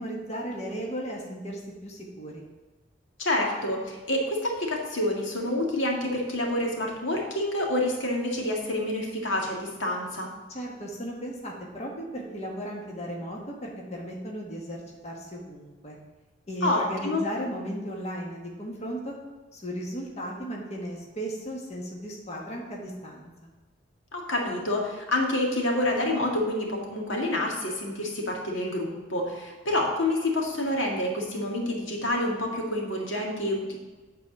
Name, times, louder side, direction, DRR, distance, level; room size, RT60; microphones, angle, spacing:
voice 1, 0.0-2.4 10.5-16.0 16.5-19.1 19.5-23.5, equal, 35° left, -1 dB, 1.4 m, -36 dB
voice 2, 3.2-10.3 16.6-17.2 24.1-33.8, left 1 dB, 85° left, 0 dB, 1.8 m, -28 dB
9.1 x 4.1 x 6.9 m, 1.3 s
head